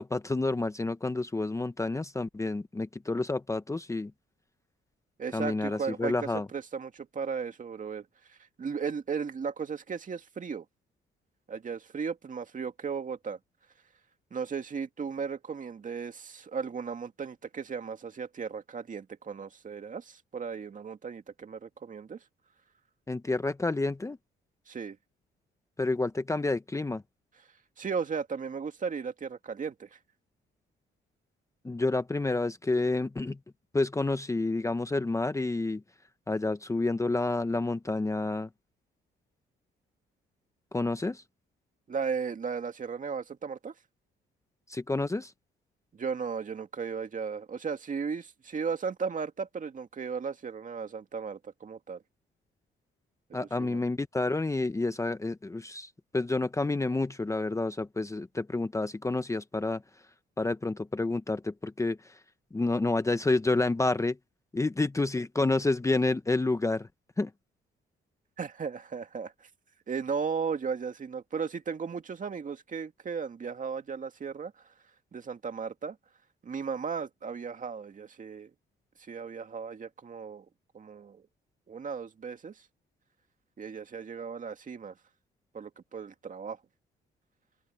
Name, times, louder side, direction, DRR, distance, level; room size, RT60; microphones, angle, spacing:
voice 1, 0.0-4.1 5.3-6.5 23.1-24.2 25.8-27.0 31.6-33.4 33.7-35.8 36.3-38.5 40.7-41.2 44.7-45.3 53.3-59.8 60.4-62.0 62.5-64.2 64.5-66.9 67.2-67.3, left 2 dB, 15° left, 0.8 m, -29 dB
voice 2, 5.2-10.7 11.5-13.4 14.3-22.2 24.7-25.0 27.8-30.0 41.9-43.7 45.9-52.0 53.3-53.8 68.4-69.5 69.9-74.6 75.1-76.0 76.4-78.5 79.0-80.5 80.7-81.2 81.7-82.6 83.6-84.9 85.5-86.6, right 6 dB, 40° right, 2.2 m, -36 dB
cardioid pair, 90°, 20 cm